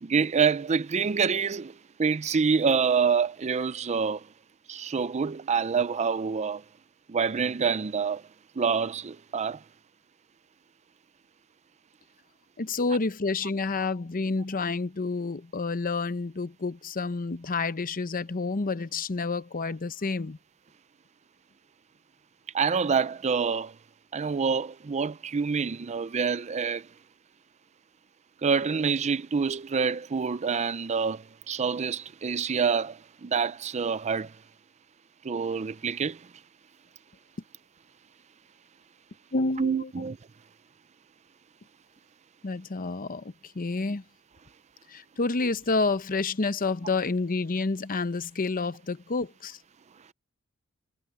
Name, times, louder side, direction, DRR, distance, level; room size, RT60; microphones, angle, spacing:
voice 1, 0.0-4.2 4.7-6.6 7.1-8.2 8.6-9.6 22.5-23.7 24.1-26.9 28.4-34.3 35.2-36.2 39.6-40.2, right 5 dB, 30° right, 0.5 m, -27 dB
voice 2, 12.6-20.4 39.3-39.9 42.4-44.0 44.9-49.6, left 3 dB, 40° left, 0.8 m, -29 dB
head